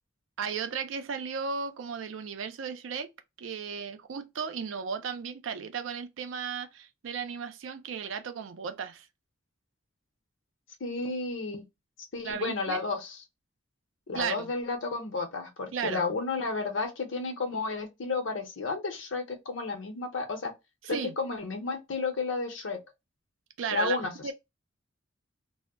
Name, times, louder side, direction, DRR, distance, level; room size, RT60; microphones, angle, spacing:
voice 1, 0.4-3.1 3.4-9.1 12.2-12.8 14.1-14.5 15.7-16.1 20.8-21.1 23.6-24.0 24.2-24.3, right 6 dB, 80° right, 0.4 m, -35 dB
voice 2, 10.8-11.7 12.1-13.2 14.1-20.5 20.9-22.8 23.7-24.1, left 3 dB, 75° left, 0.7 m, -32 dB
2.1 x 2.0 x 3.4 m
head